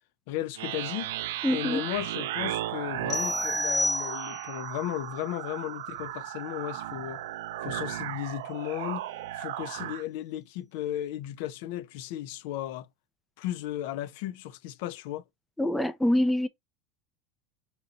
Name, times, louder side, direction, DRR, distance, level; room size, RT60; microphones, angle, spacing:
voice 1, 0.3-1.1 1.5-7.2 7.6-9.1 9.3-12.9 13.4-15.2, left 13 dB, 65° left, 0.5 m, -35 dB
sound 1, 0.5-10.0, right 13 dB, 90° right, 0.4 m, -35 dB
voice 2, 1.4-1.8 15.6-16.5, left 1 dB, 5° left, 0.4 m, -25 dB
sound 2, 3.1-4.6, left 1 dB, 20° left, 0.8 m, -29 dB
3.9 x 2.9 x 4.1 m
supercardioid pair, 150°, 0 cm